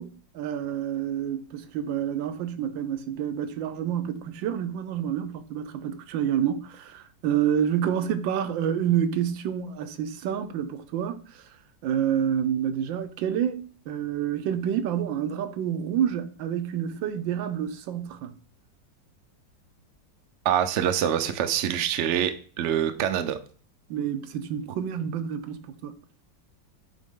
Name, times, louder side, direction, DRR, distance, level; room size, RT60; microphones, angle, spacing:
voice 1, 0.0-11.2 11.8-18.3 23.9-25.9, right 9 dB, 85° right, 1.4 m, -28 dB
voice 2, 20.4-22.3 22.6-23.4, right 10 dB, 70° right, 0.6 m, -25 dB
7.8 x 3.5 x 3.6 m
omnidirectional pair, 2.0 m